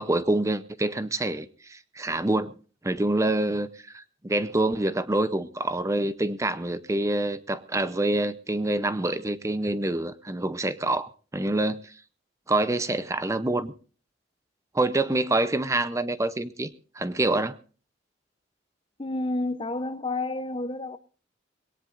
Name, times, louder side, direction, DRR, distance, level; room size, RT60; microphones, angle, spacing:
voice 1, 0.0-2.5 2.8-3.7 3.9-11.9 12.5-13.7 14.7-17.6, right 2 dB, 15° right, 0.6 m, -26 dB
voice 2, 19.0-21.0, left 2 dB, 30° left, 0.8 m, -30 dB
21.5 x 18.0 x 2.5 m
head